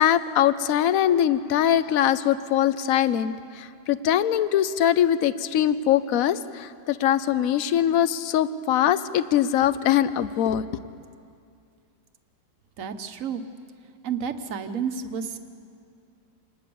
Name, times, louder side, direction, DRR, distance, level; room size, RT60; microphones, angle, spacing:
voice 1, 0.0-10.7, left 10 dB, 65° left, 14 dB, 0.9 m, -22 dB
voice 2, 12.8-13.4 14.0-15.4, right 7 dB, 50° right, 8 dB, 1.3 m, -30 dB
27.0 x 19.5 x 7.1 m, 2.4 s
omnidirectional pair, 2.1 m